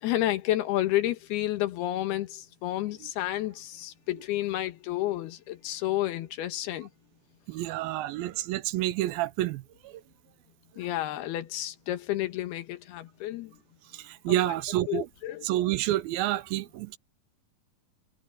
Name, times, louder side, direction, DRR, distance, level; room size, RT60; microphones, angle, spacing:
voice 1, 0.0-6.9 10.8-13.5 14.9-15.4, left 14 dB, 85° left, 3.3 m, -30 dB
voice 2, 7.5-10.0 10.7-10.9 13.9-15.1 15.4-17.0, right 15 dB, 85° right, 2.4 m, -29 dB
omnidirectional pair, 4.4 m